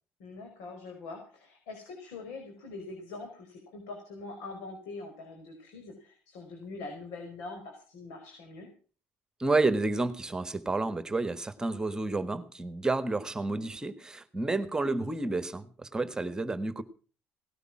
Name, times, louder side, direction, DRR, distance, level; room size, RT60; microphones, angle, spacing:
voice 1, 0.2-8.7, left 3 dB, 85° left, 3 dB, 5.2 m, -43 dB
voice 2, 9.4-16.8, right 3 dB, 15° right, 12 dB, 1.5 m, -30 dB
18.0 x 12.0 x 6.0 m, 0.40 s
cardioid pair, 100°, 5 cm